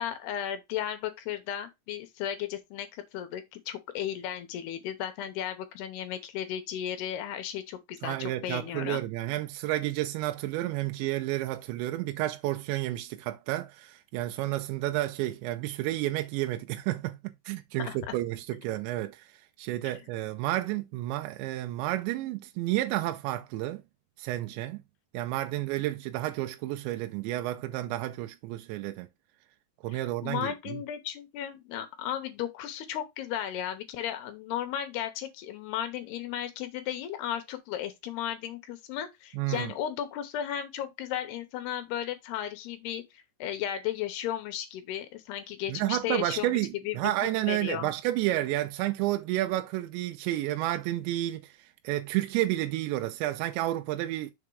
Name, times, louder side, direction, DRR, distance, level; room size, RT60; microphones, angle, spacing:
voice 1, 0.0-9.0 17.8-18.2 29.9-46.5 46.8-47.1 47.5-47.9, left 10 dB, 75° left, 2.8 m, -35 dB
voice 2, 8.0-17.2 17.5-23.8 24.2-24.8 25.1-29.1 29.8-30.8 39.3-39.7 45.7-54.3, right 15 dB, 85° right, 3.0 m, -31 dB
7.0 x 3.6 x 4.7 m
omnidirectional pair, 5.1 m